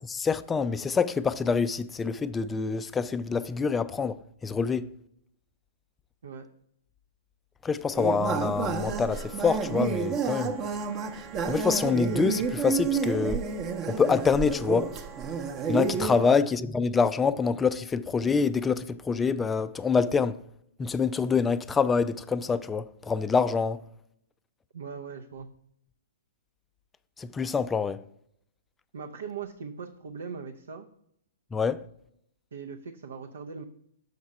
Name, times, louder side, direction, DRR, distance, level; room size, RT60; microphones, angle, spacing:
voice 1, 0.1-4.9 7.6-10.5 11.5-13.4 13.9-14.9 15.7-20.4 20.8-23.8 27.2-28.0 31.5-31.8, left 5 dB, 15° left, 0.3 m, -26 dB
sound 1, 8.0-16.2, right 5 dB, 30° right, 0.8 m, -30 dB
voice 2, 24.7-25.5 28.9-30.9 32.5-33.6, right 5 dB, 70° right, 0.6 m, -39 dB
6.5 x 4.6 x 5.4 m
hypercardioid pair, 120°, 0 cm